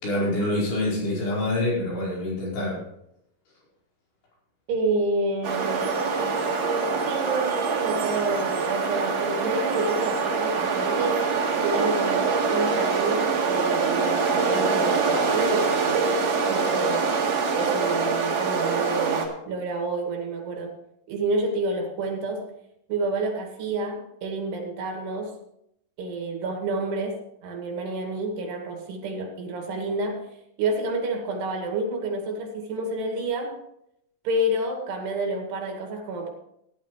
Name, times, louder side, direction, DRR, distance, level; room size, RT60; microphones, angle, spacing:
voice 1, 0.0-2.8, left 1 dB, 80° left, -6 dB, 7.0 m, -26 dB
voice 2, 4.7-5.9 7.0-11.2 11.6-16.2 16.5-17.2 17.5-20.7 21.1-22.4 22.9-25.4 26.0-30.2 30.6-33.6 34.2-36.3, right 2 dB, 80° right, 2 dB, 4.2 m, -29 dB
sound 1, 5.4-19.3, right 4 dB, 50° right, 2.3 m, -24 dB
16.5 x 11.0 x 3.2 m, 0.78 s
omnidirectional pair, 4.7 m